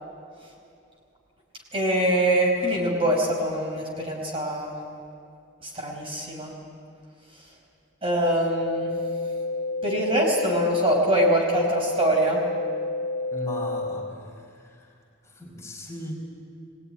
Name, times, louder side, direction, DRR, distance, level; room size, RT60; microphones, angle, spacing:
voice 1, 1.7-4.7 5.6-6.5 8.0-8.9 9.8-12.4, right 1 dB, 30° right, -1 dB, 5.0 m, -24 dB
sound 1, 8.1-14.1, left 2 dB, 75° left, 0.9 m, -30 dB
voice 2, 13.3-14.9 15.2-16.1, left 1 dB, 15° left, -2 dB, 5.0 m, -37 dB
23.0 x 18.5 x 10.0 m, 2.4 s
head